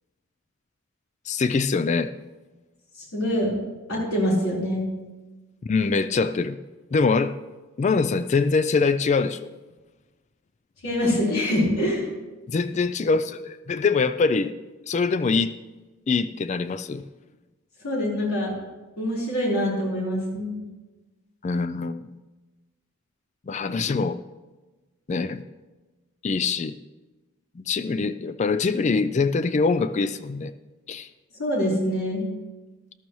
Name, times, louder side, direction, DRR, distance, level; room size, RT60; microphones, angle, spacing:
voice 1, 1.3-2.1 5.6-6.6 6.9-7.3 7.8-9.5 12.5-14.5 14.9-15.5 16.1-17.0 21.4-22.1 23.5-24.2 25.1-25.4 26.2-26.7 27.6-30.5 30.9-31.1, left 4 dB, 30° left, 12 dB, 0.3 m, -23 dB
voice 2, 2.9-3.5 3.9-4.8 10.8-12.1 17.8-18.6 19.0-20.5 31.4-32.2, left 1 dB, 70° left, -5 dB, 4.3 m, -25 dB
13.5 x 12.5 x 3.1 m, 1.2 s
head